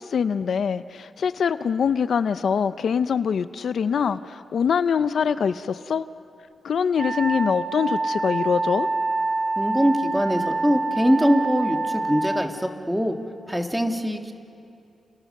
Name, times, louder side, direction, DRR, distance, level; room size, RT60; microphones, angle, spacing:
voice 1, 0.0-6.0 6.6-8.9, left 6 dB, 65° left, 12 dB, 0.6 m, -24 dB
Wind instrument woodwind instrument, 7.0-12.5, right 3 dB, 40° right, 2.3 m, -26 dB
voice 2, 9.6-13.2 13.5-14.3, equal, 5° right, 4 dB, 1.7 m, -22 dB
30.0 x 29.0 x 6.6 m, 2.6 s
wide cardioid pair, 135°, 0 cm